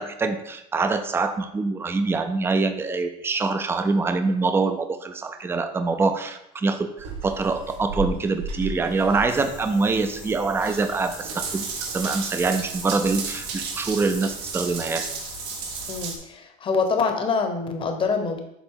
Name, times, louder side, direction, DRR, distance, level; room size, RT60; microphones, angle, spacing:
voice 1, 0.0-15.1, right 3 dB, 10° right, 9 dB, 0.4 m, -25 dB
Water tap faucet / Bathtub (filling or washing) / Drip, 7.0-16.2, right 4 dB, 85° right, 1.2 m, -34 dB
sound 1, 9.3-16.1, left 5 dB, 90° left, 2.2 m, -43 dB
voice 2, 15.9-18.4, left 4 dB, 25° left, 6 dB, 0.9 m, -25 dB
7.1 x 3.9 x 3.8 m, 0.82 s
supercardioid pair, 125°, 20 cm